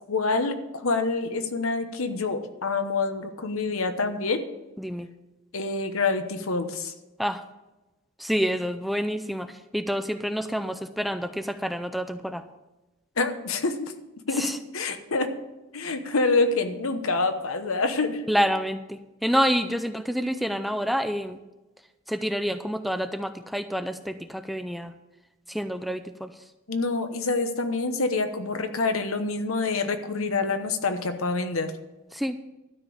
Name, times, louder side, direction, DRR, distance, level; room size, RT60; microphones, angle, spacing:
voice 1, 0.1-4.4 5.5-6.9 13.2-13.9 14.3-15.3 15.7-18.2 26.7-31.7, left 3 dB, 85° left, 8 dB, 1.1 m, -26 dB
voice 2, 4.8-5.1 7.2-7.4 8.2-12.4 14.3-14.6 18.3-21.4 22.1-24.9 25.5-26.3 32.1-32.4, equal, ahead, 9 dB, 0.4 m, -28 dB
12.5 x 5.2 x 8.5 m, 1.0 s
head